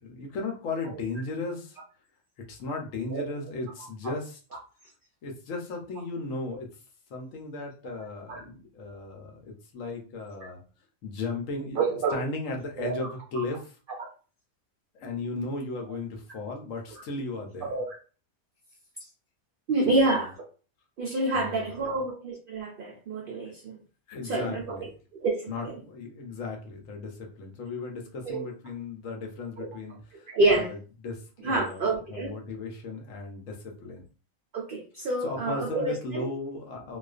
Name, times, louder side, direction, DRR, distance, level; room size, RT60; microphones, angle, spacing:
voice 1, 0.0-1.8 2.5-4.4 5.2-6.7 7.1-10.6 11.0-13.8 14.9-17.7 19.8-20.0 21.3-22.0 23.5-23.6 24.1-24.9 25.5-30.3 30.6-30.8 31.0-34.0 35.2-37.0, left 3 dB, 75° left, 2 dB, 1.0 m, -36 dB
voice 2, 11.8-12.3 12.8-13.0 17.6-18.0 19.7-20.3 21.0-23.8 24.2-24.9 25.2-25.7 28.2-28.4 29.6-29.7 30.3-30.7 31.4-32.3 34.5-36.3, right 2 dB, 75° right, 0 dB, 0.5 m, -28 dB
2.4 x 2.3 x 2.3 m, 0.37 s
omnidirectional pair, 1.4 m